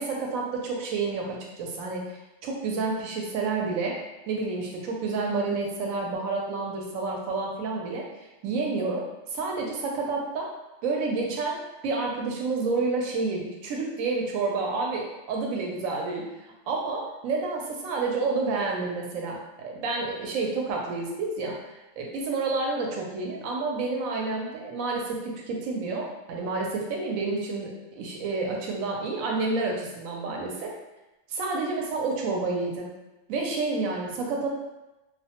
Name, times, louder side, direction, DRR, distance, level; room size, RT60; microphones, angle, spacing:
voice 1, 0.0-4.0 4.3-8.0 8.4-9.0 9.3-10.5 10.8-11.6 11.8-16.2 16.7-30.7 31.3-32.9 33.3-34.5, right 3 dB, 90° right, 0 dB, 1.0 m, -29 dB
2.3 x 2.1 x 2.8 m, 1.0 s
omnidirectional pair, 1.4 m